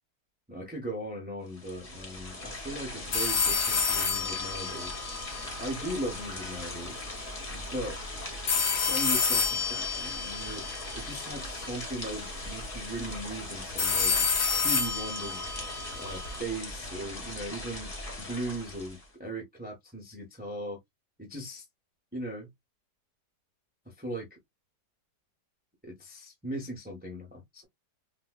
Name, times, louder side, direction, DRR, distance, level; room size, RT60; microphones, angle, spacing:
voice 1, 0.5-5.0 5.6-7.1 7.5-8.0 8.7-10.6 10.9-15.4 15.9-17.9 18.2-20.8 21.2-21.7 22.1-22.5 23.8-24.4 25.8-27.6, right 1 dB, 10° right, 0.7 m, -38 dB
sound 1, 1.5-19.1, left 2 dB, 25° left, 0.8 m, -40 dB
sound 2, 3.1-6.2 8.5-11.6 13.8-16.4, left 5 dB, 65° left, 1.6 m, -29 dB
4.1 x 2.4 x 2.3 m
omnidirectional pair, 1.9 m